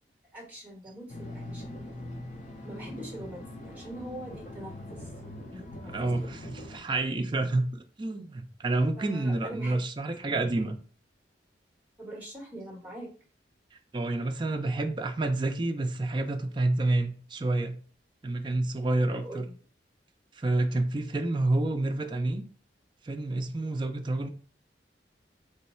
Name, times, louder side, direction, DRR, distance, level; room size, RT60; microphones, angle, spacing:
voice 1, 0.3-1.8 2.6-5.1 5.5-5.9 6.2-6.6 9.0-9.8 12.0-13.1 19.1-19.5, right 1 dB, 10° right, 1.1 m, -43 dB
sound 1, 1.1-6.8, left 1 dB, 40° left, 0.7 m, -42 dB
voice 2, 5.9-10.8 13.9-17.8 18.2-19.5 20.3-22.4 23.0-24.3, right 2 dB, 25° right, 0.3 m, -29 dB
3.1 x 2.3 x 4.2 m
head